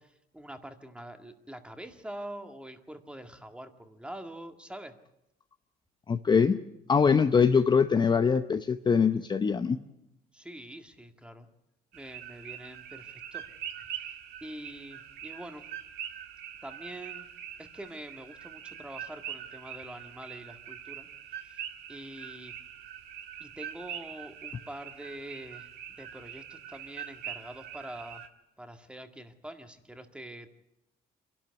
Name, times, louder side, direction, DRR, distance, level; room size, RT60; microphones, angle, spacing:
voice 1, 0.0-4.9 10.3-11.5 11.9-13.5 13.9-14.2 14.4-15.6 16.6-17.3 17.6-21.6 21.9-22.5 23.4-28.3 28.6-30.5, right 1 dB, 5° right, 6 dB, 2.0 m, -45 dB
voice 2, 6.1-6.6 6.9-9.8, left 6 dB, 25° left, 8 dB, 0.7 m, -23 dB
sound 1, 11.9-28.3, right 10 dB, 85° right, 2.0 m, -43 dB
26.0 x 12.0 x 9.5 m, 0.88 s
cardioid pair, 110°, 17 cm